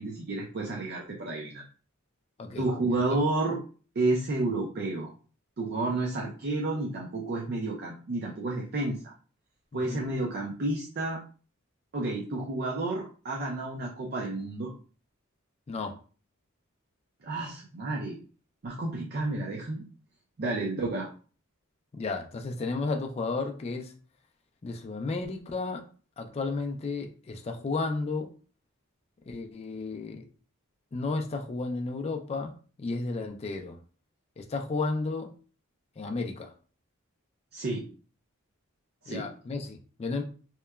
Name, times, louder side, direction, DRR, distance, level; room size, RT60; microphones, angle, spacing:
voice 1, 0.0-1.6 2.6-3.6 4.0-5.1 5.6-9.1 9.7-11.2 11.9-14.7 17.2-18.2 18.6-19.8 20.4-21.1 37.5-37.9 39.0-39.3, right 2 dB, 45° right, -1 dB, 0.4 m, -31 dB
voice 2, 2.4-3.0 9.7-10.0 15.7-15.9 21.9-23.9 24.6-25.8 26.2-28.3 29.3-30.2 30.9-32.5 32.8-33.8 34.4-35.3 36.0-36.5 39.1-40.2, left 3 dB, 30° left, 4 dB, 0.3 m, -33 dB
2.9 x 2.2 x 2.2 m, 0.39 s
head